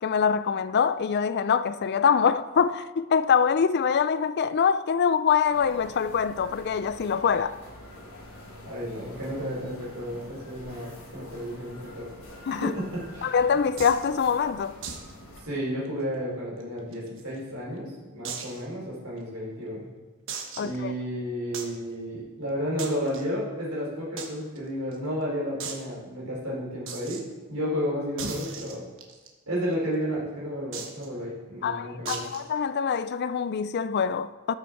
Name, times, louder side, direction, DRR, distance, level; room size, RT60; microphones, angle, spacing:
voice 1, 0.0-7.6 12.5-12.7 13.2-14.8 20.6-20.9 31.6-34.5, left 6 dB, 50° left, 0.4 m, -24 dB
sound 1, 5.5-15.4, left 1 dB, 75° left, 3.7 m, -46 dB
voice 2, 8.7-12.1 12.5-13.4 15.4-19.9 20.6-27.2 27.5-28.8 29.5-32.2, equal, 80° right, 3.8 m, -32 dB
sound 2, 13.8-14.1 14.8-15.1 15.4-15.5 15.9-16.0 16.6-17.4 18.2-18.6 19.2-19.3 20.3-20.8 21.5-21.8 22.8-23.2 24.2-24.3 24.6-24.7 24.9-25.0 25.6-25.8 26.9-27.2 28.2-29.3 30.7-31.1 32.1-32.4, right 5 dB, 60° right, 1.3 m, -36 dB
13.0 x 6.2 x 4.6 m
head